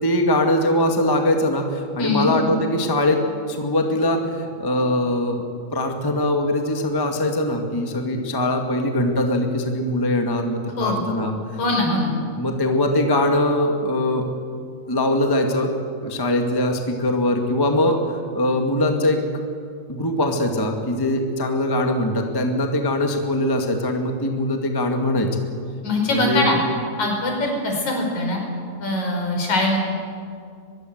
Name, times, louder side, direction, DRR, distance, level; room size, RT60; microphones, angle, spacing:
voice 1, 0.0-3.2 3.5-5.4 5.7-11.3 12.4-14.2 14.9-15.7 16.0-18.0 18.3-19.3 19.9-25.3 26.1-26.5, left 1 dB, 10° left, 3 dB, 1.4 m, -22 dB
voice 2, 2.0-2.3 10.8-11.1 11.6-12.1 25.8-26.6 27.0-28.4 28.8-29.9, left 2 dB, 65° left, 1 dB, 6.4 m, -22 dB
23.0 x 22.5 x 8.0 m, 2.2 s
omnidirectional pair, 3.5 m